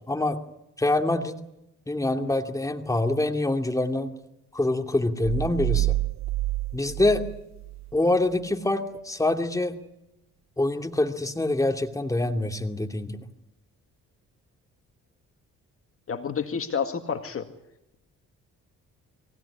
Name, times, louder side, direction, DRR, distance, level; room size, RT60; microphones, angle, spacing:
voice 1, 0.1-0.4 0.8-1.3 1.9-4.1 4.5-6.0 6.7-7.3 7.9-9.8 10.6-13.2, left 2 dB, 10° left, 4 dB, 2.6 m, -25 dB
sound 1, 5.2-8.0, right 17 dB, 65° right, 0.9 m, -28 dB
voice 2, 16.1-17.5, left 6 dB, 45° left, 6 dB, 2.0 m, -29 dB
23.0 x 17.0 x 9.9 m, 0.86 s
cardioid pair, 90°, 30 cm